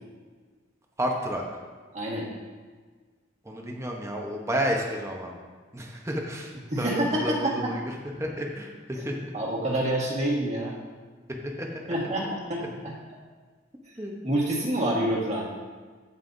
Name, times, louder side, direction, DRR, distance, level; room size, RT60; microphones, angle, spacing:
voice 1, 1.0-1.4 3.4-5.3 5.7-6.5 6.8-9.3 11.4-11.8 12.2-12.3 12.6-12.7 14.0-14.2, equal, 15° right, 0 dB, 0.9 m, -31 dB
voice 2, 1.9-2.3 6.7-7.7 9.3-10.7 11.9-13.2 14.2-15.5, right 1 dB, 35° right, -2 dB, 1.6 m, -27 dB
15.5 x 5.5 x 2.7 m, 1.5 s
head